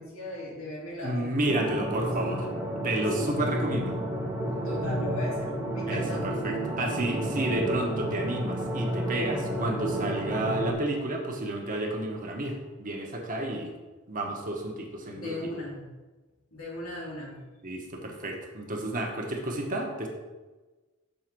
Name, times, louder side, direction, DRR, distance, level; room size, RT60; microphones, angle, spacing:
voice 1, 0.0-2.1 3.1-3.3 4.6-6.3 15.1-15.9 16.5-17.4, left 1 dB, 80° left, -4 dB, 2.6 m, -37 dB
voice 2, 1.0-2.5 2.8-4.0 5.9-13.7 14.1-15.5 17.6-20.1, right 1 dB, 40° right, 1 dB, 1.2 m, -31 dB
sound 1, 1.5-10.7, right 1 dB, 10° right, 1.2 m, -31 dB
6.5 x 4.2 x 6.0 m, 1.2 s
head